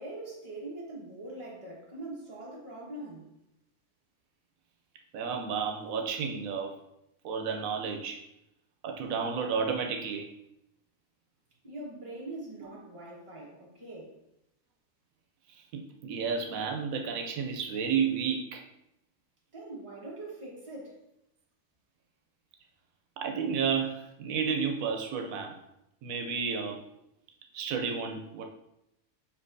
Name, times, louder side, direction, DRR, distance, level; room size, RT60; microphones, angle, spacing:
voice 1, 0.0-3.3 11.6-14.1 19.5-21.0, right 2 dB, 25° right, -4 dB, 1.2 m, -42 dB
voice 2, 5.1-6.7 7.2-8.2 8.8-10.3 15.5-18.6 23.2-25.5 26.0-26.8 27.5-28.4, right 6 dB, 90° right, 3 dB, 1.0 m, -31 dB
6.8 x 2.8 x 2.6 m, 0.83 s
omnidirectional pair, 1.4 m